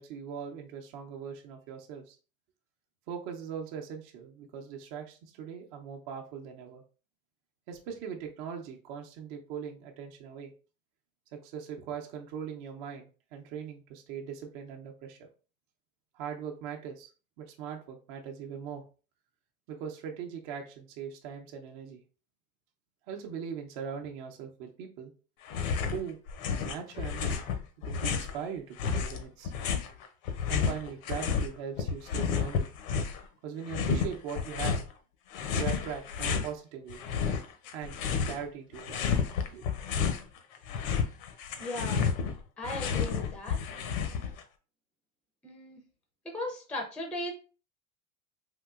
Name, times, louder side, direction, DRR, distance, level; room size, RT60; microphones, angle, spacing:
voice 1, 0.0-2.2 3.1-6.8 7.7-10.5 11.3-15.2 16.1-17.1 17.4-18.8 19.7-22.0 23.1-25.1 25.9-26.2 26.5-27.5 27.9-29.5 30.5-32.7 33.4-34.8 35.5-37.0 37.7-38.0 38.3-39.1 39.5-39.6, right 7 dB, 55° right, 0.7 m, -40 dB
sound 1, 25.5-26.0 26.3-28.4 28.8-31.5 31.8-33.2 33.7-34.9 35.3-36.5 36.9-38.4 38.7-40.2 40.5-44.4, left 6 dB, 75° left, 0.7 m, -31 dB
voice 2, 41.6-42.1 42.6-43.6 45.4-45.8 46.2-47.3, left 1 dB, 5° left, 0.4 m, -37 dB
3.6 x 2.7 x 2.4 m
supercardioid pair, 125°, 42 cm